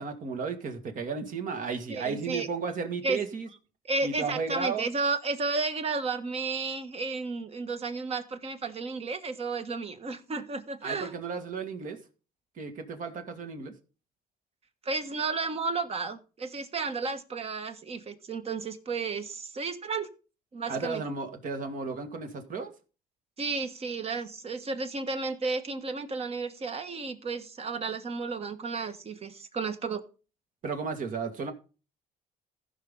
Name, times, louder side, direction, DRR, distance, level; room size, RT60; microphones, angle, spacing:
voice 1, 0.0-3.5 4.0-4.9 10.8-12.0 12.6-13.7 20.7-22.7 30.6-31.5, right 5 dB, 50° right, 1.9 m, -34 dB
voice 2, 1.9-2.5 3.0-3.2 3.9-11.1 14.8-20.1 20.5-21.0 23.4-30.0, right 4 dB, 35° right, 1.3 m, -32 dB
15.0 x 5.8 x 3.7 m
cardioid pair, 110°, 17 cm